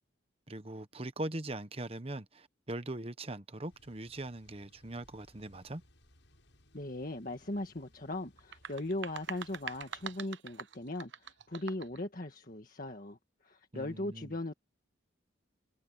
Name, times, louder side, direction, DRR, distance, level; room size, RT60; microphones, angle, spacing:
voice 1, 0.5-5.8 13.7-14.3, right 1 dB, 30° right, 1.1 m, -41 dB
Thunder / Bicycle, 3.7-10.2, left 1 dB, 75° left, 7.8 m, -64 dB
voice 2, 6.7-14.5, left 1 dB, 45° left, 1.7 m, -39 dB
sound 1, 8.4-12.0, right 7 dB, 70° right, 0.8 m, -44 dB
head